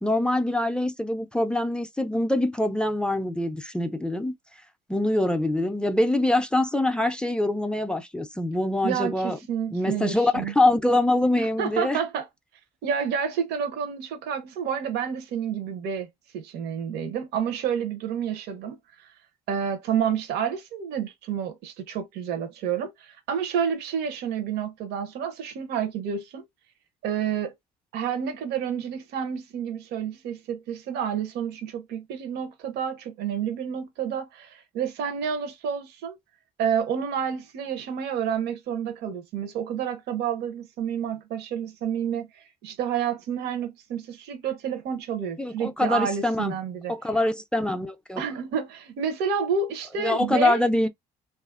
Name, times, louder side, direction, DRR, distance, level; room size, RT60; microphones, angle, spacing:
voice 1, 0.0-4.3 4.9-9.4 9.7-12.0 45.4-46.6 46.9-48.3 50.0-50.9, left 1 dB, 5° left, 0.4 m, -24 dB
voice 2, 8.8-10.5 11.4-12.3 12.8-16.1 16.3-19.1 19.5-26.4 27.0-27.5 27.9-36.2 36.6-46.9 48.2-50.6, right 7 dB, 80° right, 0.7 m, -29 dB
2.8 x 2.4 x 2.4 m
cardioid pair, 110°, 17 cm